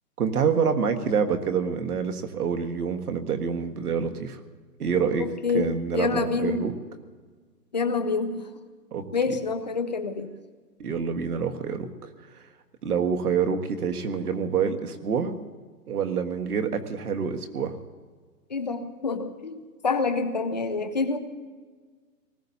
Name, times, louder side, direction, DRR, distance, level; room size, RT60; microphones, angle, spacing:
voice 1, 0.2-4.4 4.8-5.3 5.5-6.7 8.9-9.1 10.8-12.1 12.8-15.3 15.9-17.7, right 6 dB, 65° right, 6 dB, 1.7 m, -27 dB
voice 2, 5.2-5.7 5.9-6.6 7.7-8.5 9.1-10.3 18.5-19.6 19.8-21.2, left 4 dB, 25° left, 8 dB, 0.7 m, -27 dB
25.5 x 19.5 x 2.8 m, 1.5 s
hypercardioid pair, 170°, 48 cm